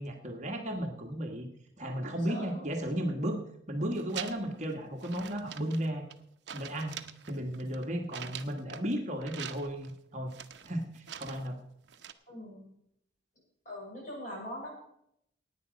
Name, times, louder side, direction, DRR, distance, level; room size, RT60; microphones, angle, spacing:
voice 1, 0.0-1.5 1.8-3.4 3.7-6.0 6.5-6.9 7.3-10.3 10.6-11.6, equal, 35° right, 2 dB, 1.4 m, -34 dB
voice 2, 2.3-2.7 12.3-12.7 13.6-14.7, equal, 40° left, -2 dB, 6.3 m, -42 dB
sound 1, 3.8-4.6 5.0-6.2 6.5-8.9 9.2-9.9 10.3-11.5 11.9-12.1, right 9 dB, 60° right, 0.8 m, -44 dB
16.5 x 9.4 x 5.1 m, 0.74 s
head